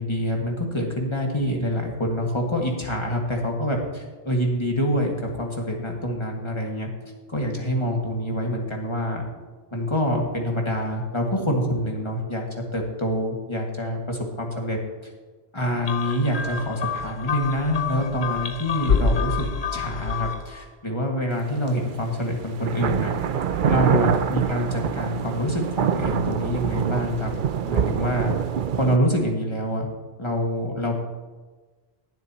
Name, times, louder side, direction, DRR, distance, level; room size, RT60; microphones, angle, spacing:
voice 1, 0.0-6.9 7.3-9.2 9.7-12.5 12.7-14.8 15.5-23.1 23.7-27.3 27.6-28.3 28.7-29.9 30.2-31.0, equal, 25° left, 0 dB, 2.0 m, -26 dB
sound 1, 15.9-20.6, left 5 dB, 75° left, 1.1 m, -27 dB
sound 2, 21.7-21.8 22.5-29.0, right 8 dB, 60° right, 0.7 m, -25 dB
21.0 x 8.0 x 3.0 m, 1.3 s
omnidirectional pair, 1.1 m